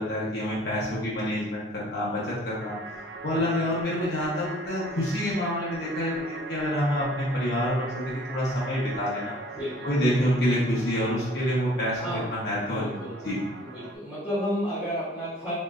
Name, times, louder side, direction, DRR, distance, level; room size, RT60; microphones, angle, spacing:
voice 1, 0.0-2.7 3.2-9.4 9.8-13.4, equal, 70° left, -7 dB, 1.0 m, -27 dB
sound 1, 2.6-14.0, right 3 dB, 85° right, 0.4 m, -41 dB
voice 2, 3.3-3.8 9.5-10.2 12.0-12.3 12.7-13.2 13.6-15.5, equal, 5° right, -17 dB, 1.5 m, -32 dB
4.1 x 3.1 x 2.5 m, 0.98 s
head